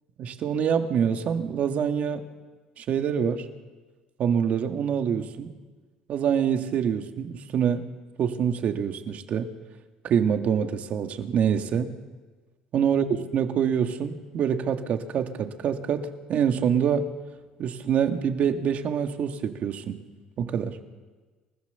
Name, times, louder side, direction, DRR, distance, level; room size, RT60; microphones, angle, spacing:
voice 1, 0.2-2.2 2.8-3.5 4.2-5.5 6.1-7.8 8.2-9.5 10.0-11.9 12.7-17.1 17.6-20.0 20.4-20.8, right 7 dB, 60° right, 6 dB, 2.0 m, -25 dB
28.5 x 15.0 x 7.0 m, 1.3 s
supercardioid pair, 80°, 3 cm